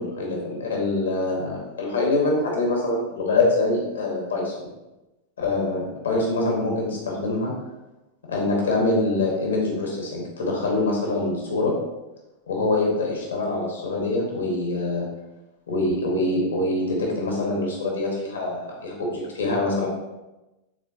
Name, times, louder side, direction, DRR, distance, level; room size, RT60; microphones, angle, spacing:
voice 1, 0.0-4.7 5.4-7.5 8.3-11.7 12.5-15.1 15.7-19.9, left 2 dB, 70° left, -1 dB, 1.8 m, -24 dB
9.3 x 4.3 x 2.9 m, 1.0 s
figure-of-eight pair, 90°, 0 cm